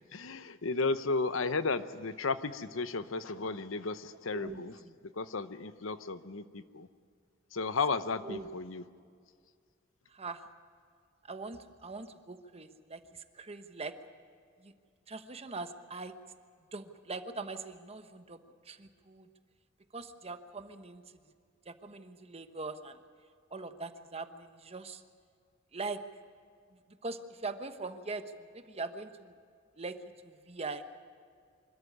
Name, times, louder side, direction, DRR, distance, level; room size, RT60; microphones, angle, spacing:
voice 1, 0.1-4.8 5.1-6.9 7.5-8.8, left 4 dB, 80° left, 12 dB, 0.9 m, -34 dB
voice 2, 4.3-4.9 8.2-8.5 10.1-10.4 11.2-13.9 14.6-14.7 15.1-16.1 16.7-19.3 19.9-21.0 21.7-23.0 23.5-25.0 25.7-26.0 27.0-29.3 29.8-30.8, right 3 dB, 30° right, 9 dB, 1.1 m, -42 dB
25.0 x 13.5 x 9.8 m, 2.2 s
head